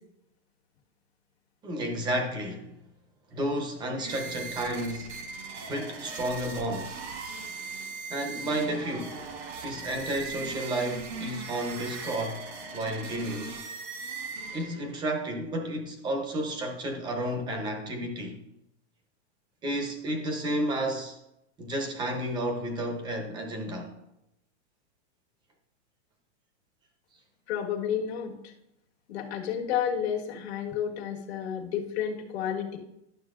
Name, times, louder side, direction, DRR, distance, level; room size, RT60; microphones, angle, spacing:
voice 1, 1.6-2.8 3.3-5.1 5.7-7.0 8.1-9.2 9.6-12.5 12.7-13.6 14.5-18.4 19.6-21.2 21.6-23.9, right 1 dB, 15° right, 0.8 m, -32 dB
sound 1, 4.0-15.0, right 4 dB, 70° right, 1.7 m, -39 dB
voice 2, 27.5-28.4 29.1-32.8, left 8 dB, 65° left, 1.6 m, -31 dB
11.5 x 6.7 x 2.5 m
supercardioid pair, 165°, 34 cm